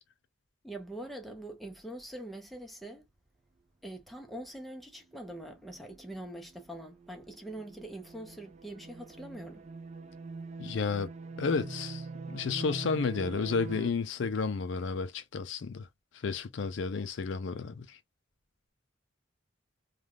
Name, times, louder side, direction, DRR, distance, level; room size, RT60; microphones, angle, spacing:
voice 1, 0.6-3.1 3.8-9.7, right 1 dB, ahead, 0.7 m, -43 dB
sound 1, 5.1-13.9, right 4 dB, 35° right, 0.3 m, -44 dB
voice 2, 10.6-11.1 11.4-12.0 12.3-15.9 16.2-18.0, left 5 dB, 65° left, 0.4 m, -32 dB
3.3 x 2.3 x 2.3 m
head